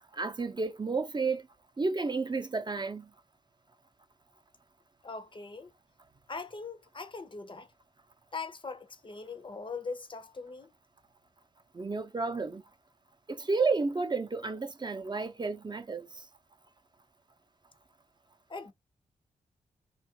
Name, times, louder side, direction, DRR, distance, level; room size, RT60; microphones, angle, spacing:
voice 1, 0.1-1.5 1.8-3.1 11.7-12.6 13.3-16.2, right 4 dB, 30° right, 0.5 m, -31 dB
voice 2, 5.0-5.7 6.3-7.7 8.3-10.7 18.5-18.7, left 4 dB, 35° left, 0.5 m, -41 dB
3.0 x 2.3 x 2.8 m
cardioid pair, 60°, 15 cm